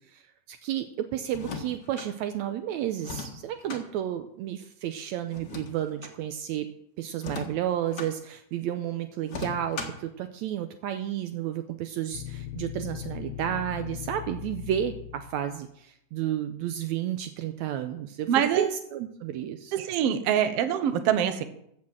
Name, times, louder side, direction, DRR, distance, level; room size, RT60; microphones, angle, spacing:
voice 1, 0.1-6.7 7.0-18.3 18.6-19.7, right 11 dB, 85° right, 8 dB, 1.6 m, -32 dB
sound 1, 1.3-2.1 3.0-3.8 5.3-6.2 7.2-8.1 9.3-10.1, left 4 dB, 45° left, 1.5 m, -38 dB
sound 2, 12.1-15.6, left 12 dB, 80° left, 1.3 m, -39 dB
voice 2, 18.3-18.7 19.7-21.4, right 9 dB, 70° right, 9 dB, 1.5 m, -24 dB
15.0 x 6.6 x 7.4 m, 0.75 s
omnidirectional pair, 4.0 m